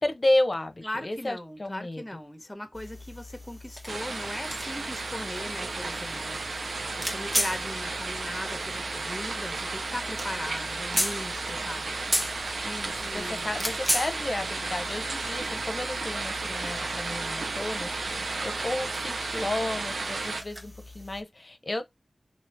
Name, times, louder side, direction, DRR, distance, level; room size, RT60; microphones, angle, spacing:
voice 1, 0.0-2.0 12.6-21.8, left 1 dB, 45° left, 0.8 m, -32 dB
voice 2, 0.8-12.0 13.0-13.5, left 1 dB, 20° left, 1.2 m, -39 dB
sound 1, 2.7-21.2, equal, 10° right, 1.1 m, -37 dB
sound 2, 3.9-20.4, right 3 dB, 85° right, 0.5 m, -33 dB
3.0 x 2.9 x 4.5 m
cardioid pair, 45°, 0 cm